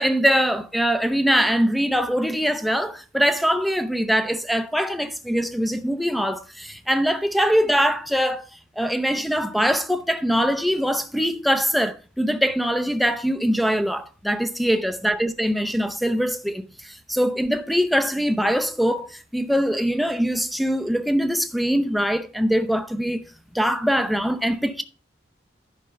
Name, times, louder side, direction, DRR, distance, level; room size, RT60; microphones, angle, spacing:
voice 1, 0.0-8.4 8.8-23.2 23.5-24.8, equal, ahead, 0.7 m, -22 dB
10.5 x 5.3 x 5.6 m
head